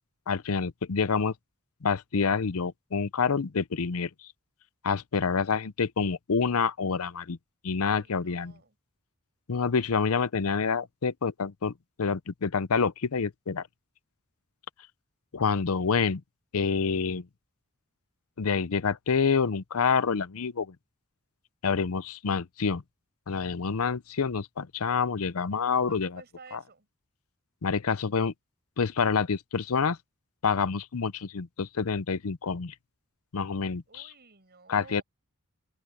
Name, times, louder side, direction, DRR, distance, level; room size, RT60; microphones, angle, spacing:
voice 1, 0.3-1.3 1.8-4.1 4.8-7.4 7.6-8.5 9.5-13.7 15.3-16.2 16.5-17.3 18.4-20.7 21.6-22.8 23.3-26.1 27.6-28.3 28.8-30.0 30.4-32.7 33.3-33.8 34.7-35.0, left 5 dB, 70° left, 0.7 m, -27 dB
voice 2, 7.8-8.8 25.9-26.9 33.9-35.0, right 4 dB, 45° right, 7.8 m, -53 dB
head